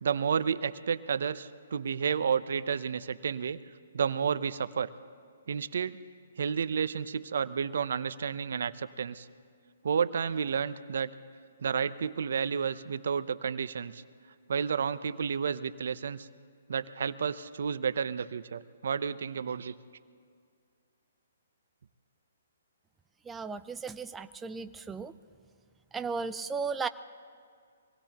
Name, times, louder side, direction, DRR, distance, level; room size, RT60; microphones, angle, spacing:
voice 1, 0.0-3.6 3.9-4.9 5.5-6.0 6.4-9.3 9.8-11.1 11.6-14.0 14.5-16.3 16.7-19.7, right 6 dB, 65° right, 15 dB, 0.6 m, -31 dB
voice 2, 23.3-25.1 25.9-26.9, right 5 dB, 10° right, 10 dB, 0.4 m, -35 dB
25.0 x 19.0 x 3.0 m, 2.2 s
hypercardioid pair, 140°, 0 cm